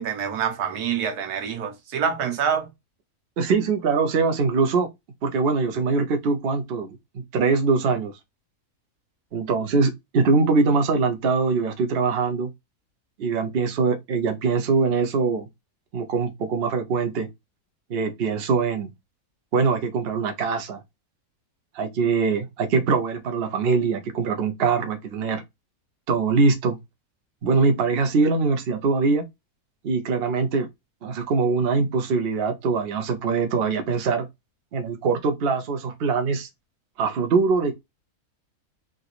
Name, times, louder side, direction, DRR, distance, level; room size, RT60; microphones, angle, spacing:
voice 1, 0.0-2.7, right 7 dB, 90° right, 1.4 m, -26 dB
voice 2, 3.4-4.9 5.2-8.1 9.3-12.5 13.2-15.5 15.9-17.3 17.9-18.9 19.5-20.8 21.7-25.4 26.1-26.8 27.4-29.2 29.8-30.7 31.0-34.3 34.7-36.5 37.0-37.7, right 4 dB, 50° right, 0.8 m, -23 dB
3.8 x 2.9 x 2.4 m
omnidirectional pair, 1.6 m